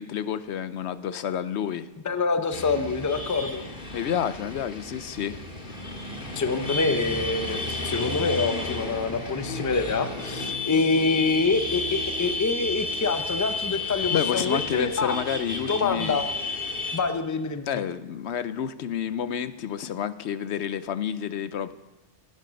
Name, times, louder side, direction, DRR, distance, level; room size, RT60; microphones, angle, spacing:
voice 1, 0.0-1.9 3.9-5.4 14.1-16.2 17.6-21.7, left 9 dB, 70° left, 14 dB, 0.9 m, -29 dB
voice 2, 2.0-3.6 6.4-15.2 15.7-16.2 16.9-17.7, left 4 dB, 20° left, 9 dB, 0.6 m, -26 dB
sound 1, 2.5-17.0, left 3 dB, 45° left, 2.0 m, -32 dB
17.0 x 10.5 x 5.2 m, 1.1 s
omnidirectional pair, 1.2 m